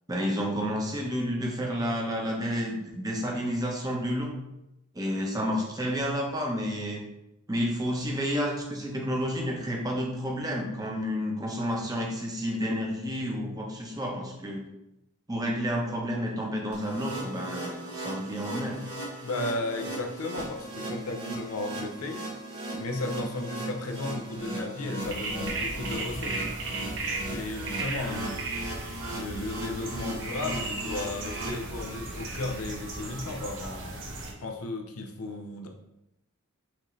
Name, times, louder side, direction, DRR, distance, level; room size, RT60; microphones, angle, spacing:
voice 1, 0.1-4.4 4.9-7.0 7.5-14.6 15.3-18.8, equal, 15° right, -1 dB, 0.7 m, -30 dB
sound 1, 16.7-31.5, right 1 dB, 75° right, 1.2 m, -38 dB
voice 2, 19.2-22.2 22.8-26.4 27.3-28.4 29.1-35.7, left 2 dB, 90° left, 4 dB, 0.6 m, -35 dB
sound 2, 25.0-34.3, right 3 dB, 60° right, 0.8 m, -36 dB
sound 3, 25.5-32.5, left 1 dB, 30° left, 0.5 m, -48 dB
5.9 x 2.7 x 3.1 m, 0.88 s
head